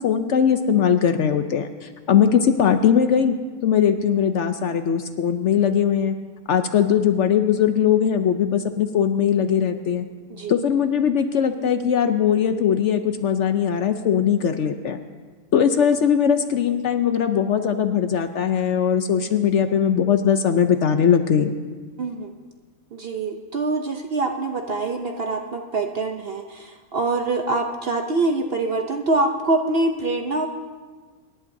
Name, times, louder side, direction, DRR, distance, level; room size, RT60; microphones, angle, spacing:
voice 1, 0.0-3.4 3.6-6.2 6.5-10.1 10.5-15.0 15.5-21.6, left 8 dB, 65° left, 8 dB, 0.8 m, -20 dB
voice 2, 22.0-22.3 22.9-30.5, right 2 dB, 55° right, 4 dB, 0.7 m, -24 dB
25.5 x 11.0 x 2.7 m, 1.4 s
omnidirectional pair, 1.6 m